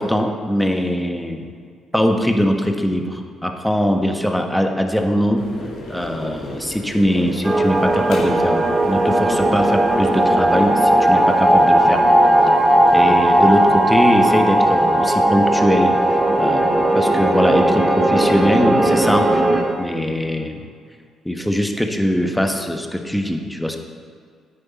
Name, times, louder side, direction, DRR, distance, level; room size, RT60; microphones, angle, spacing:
voice 1, 0.0-1.4 1.9-5.4 5.9-12.0 12.9-16.0 16.4-16.6 16.9-19.4 19.8-20.6 21.2-23.8, equal, 5° left, 4 dB, 1.3 m, -21 dB
sound 1, 5.4-19.8, left 1 dB, 65° left, 2.2 m, -36 dB
sound 2, 7.4-19.6, right 1 dB, 20° right, 2.1 m, -16 dB
9.8 x 9.3 x 4.2 m, 2.1 s
hypercardioid pair, 45°, 0 cm